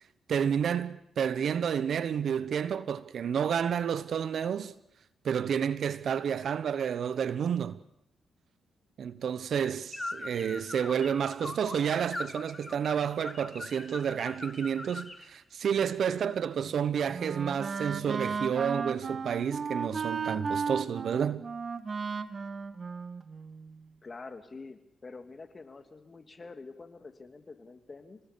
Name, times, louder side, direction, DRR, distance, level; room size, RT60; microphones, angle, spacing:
voice 1, 0.3-4.7 5.2-7.8 9.0-21.4, right 8 dB, 65° right, 1.0 m, -30 dB
sound 1, 9.9-15.3, left 2 dB, 20° left, 3.2 m, -41 dB
Wind instrument woodwind instrument, 16.6-23.8, right 5 dB, 45° right, 1.6 m, -35 dB
voice 2, 24.0-28.2, left 3 dB, 40° left, 2.9 m, -47 dB
27.5 x 19.0 x 7.0 m
hypercardioid pair, 45°, 0 cm